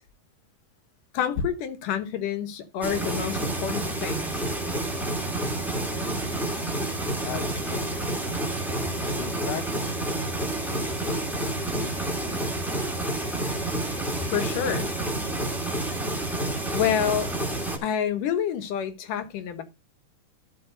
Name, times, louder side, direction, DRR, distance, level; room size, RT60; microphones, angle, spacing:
voice 1, 1.1-4.4 14.3-14.9 16.7-17.3 17.8-19.6, left 8 dB, 80° left, 2.8 m, -28 dB
sound 1, 2.8-17.8, right 1 dB, ahead, 2.1 m, -29 dB
voice 2, 7.2-8.0 9.0-10.0 10.5-12.4, left 10 dB, 60° left, 2.0 m, -39 dB
13.0 x 5.4 x 3.9 m
omnidirectional pair, 3.8 m